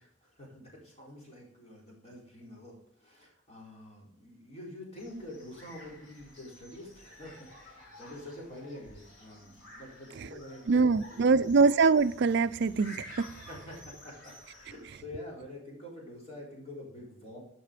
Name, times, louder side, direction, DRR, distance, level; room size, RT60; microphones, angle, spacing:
voice 1, 0.0-11.5 13.3-17.4, left 1 dB, 30° left, 3.9 m, -47 dB
sound 1, 5.0-15.0, left 1 dB, 65° left, 3.9 m, -52 dB
voice 2, 10.7-13.3, right 4 dB, 55° right, 0.4 m, -24 dB
11.5 x 5.6 x 5.0 m
head